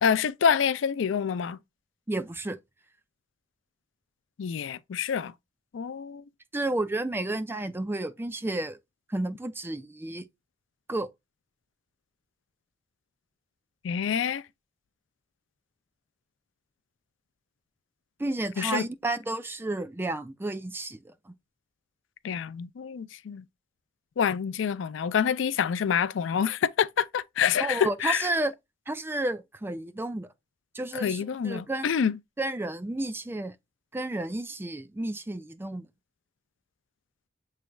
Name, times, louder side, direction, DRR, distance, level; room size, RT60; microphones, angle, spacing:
voice 1, 0.0-1.6 4.4-5.3 5.7-6.2 13.8-14.4 18.6-18.8 22.2-23.4 24.2-28.3 30.9-32.2, left 7 dB, 70° left, 0.4 m, -27 dB
voice 2, 2.1-2.6 6.5-8.8 9.1-10.3 10.9-11.1 18.2-21.3 27.6-28.5 28.9-30.3 30.7-31.9 32.4-33.5 33.9-35.9, right 2 dB, 10° right, 0.4 m, -31 dB
7.0 x 3.2 x 2.3 m
head